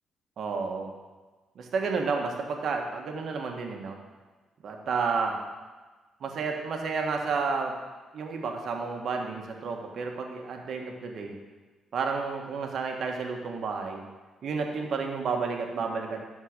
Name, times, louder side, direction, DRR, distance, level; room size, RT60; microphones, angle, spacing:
voice 1, 0.4-0.9 1.5-4.0 4.6-5.4 6.2-7.8 8.1-11.3 11.9-14.0 14.4-16.2, right 4 dB, 65° right, 2 dB, 1.5 m, -31 dB
12.0 x 4.5 x 6.6 m, 1.3 s
cardioid pair, 85°, 0 cm